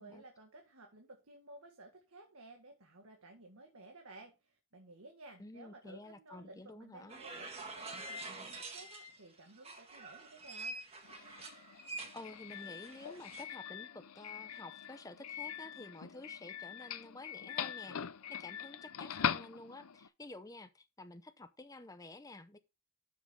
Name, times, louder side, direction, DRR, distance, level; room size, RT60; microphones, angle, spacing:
voice 1, 0.0-10.8, right 2 dB, 80° right, 1.8 m, -56 dB
voice 2, 5.4-7.2 12.1-18.0 18.3-22.6, left 2 dB, 15° left, 0.6 m, -51 dB
sound 1, 7.1-9.2 9.6-13.4, right 2 dB, 30° right, 1.8 m, -46 dB
Doorbell, 11.0-20.1, left 8 dB, 85° left, 0.6 m, -42 dB
12.5 x 6.2 x 3.6 m
head